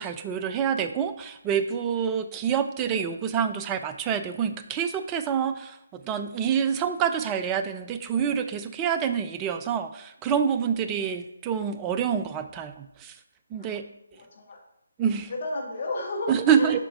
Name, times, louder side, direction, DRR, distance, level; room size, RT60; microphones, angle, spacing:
voice 1, 0.0-13.1 13.5-13.8 15.0-15.3 16.3-16.8, right 7 dB, 15° right, 9 dB, 0.3 m, -27 dB
voice 2, 14.1-14.6 15.3-16.8, left 2 dB, 40° left, -2 dB, 1.8 m, -33 dB
8.0 x 5.6 x 2.5 m, 0.82 s
figure-of-eight pair, 145°, 0 cm